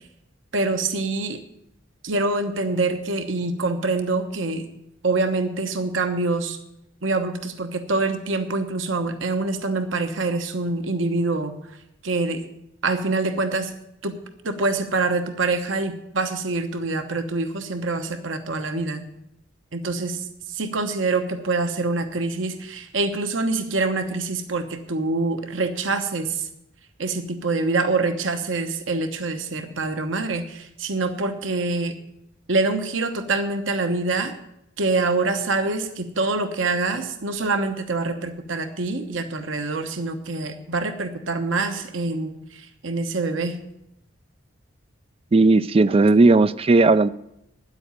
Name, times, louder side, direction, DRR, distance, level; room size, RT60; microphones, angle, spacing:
voice 1, 0.5-1.4 2.0-4.6 5.0-6.6 7.0-11.5 12.0-12.4 12.8-13.7 14.0-14.2 14.4-19.0 19.7-20.2 20.5-26.4 27.0-31.9 32.5-34.3 34.8-42.4 42.8-43.5, right 3 dB, 85° right, 1.2 m, -25 dB
voice 2, 45.3-47.1, right 3 dB, 30° right, 0.4 m, -16 dB
10.5 x 8.0 x 9.0 m
head